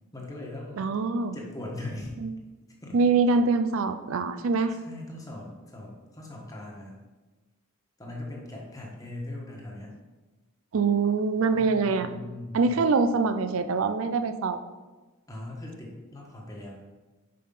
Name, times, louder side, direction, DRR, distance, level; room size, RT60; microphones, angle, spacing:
voice 1, 0.1-0.8 1.3-2.2 2.8-3.0 4.7-7.0 8.0-9.9 11.6-12.9 15.3-16.7, left 2 dB, 15° left, -1 dB, 1.3 m, -40 dB
voice 2, 0.8-1.4 2.2-2.3 2.9-4.7 10.7-12.1 12.5-14.6, right 4 dB, 70° right, 10 dB, 0.4 m, -24 dB
5.6 x 5.3 x 5.4 m, 1.2 s
head